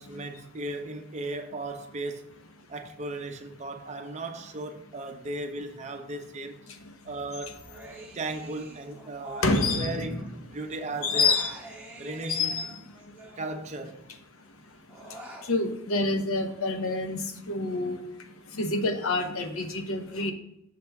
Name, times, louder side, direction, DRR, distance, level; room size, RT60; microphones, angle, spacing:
voice 1, 0.0-2.4 2.7-6.7 7.0-7.7 8.1-11.4 12.0-12.6 13.4-14.1, right 2 dB, 30° right, 0.5 m, -36 dB
Human voice, 7.6-10.3 10.5-14.0 14.4-15.5, right 1 dB, 10° right, 0.8 m, -47 dB
voice 2, 9.4-10.3 11.0-11.5 12.3-12.7 15.5-18.0 18.6-20.3, left 3 dB, 75° left, 0.8 m, -27 dB
6.7 x 3.4 x 5.8 m
head